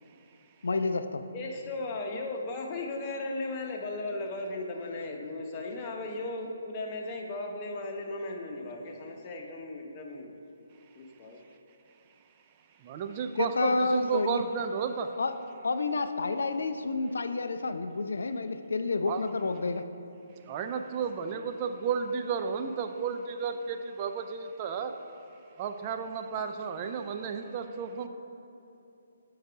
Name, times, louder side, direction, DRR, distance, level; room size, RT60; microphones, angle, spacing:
voice 1, 0.6-1.2 13.4-14.4 15.2-15.3 15.6-19.8, left 3 dB, 70° left, 8 dB, 0.3 m, -29 dB
voice 2, 1.3-10.3 10.9-11.4 21.0-21.1, left 2 dB, 30° left, 1 dB, 0.9 m, -36 dB
voice 3, 12.8-15.1 19.1-19.2 20.4-24.9 25.6-28.1, right 6 dB, 30° right, 6 dB, 0.4 m, -33 dB
6.5 x 4.7 x 4.9 m, 2.8 s
figure-of-eight pair, 140°, 0 cm